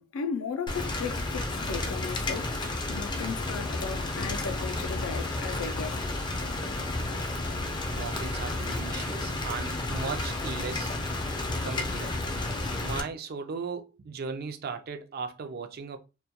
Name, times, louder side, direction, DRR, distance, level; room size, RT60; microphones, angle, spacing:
voice 1, 0.0-6.1, left 5 dB, 85° left, 0.4 m, -36 dB
Rain, 0.7-13.0, left 2 dB, 20° left, 0.4 m, -32 dB
voice 2, 7.9-10.9 11.6-12.1 12.8-16.0, right 5 dB, 50° right, 0.4 m, -37 dB
2.2 x 2.2 x 2.8 m
head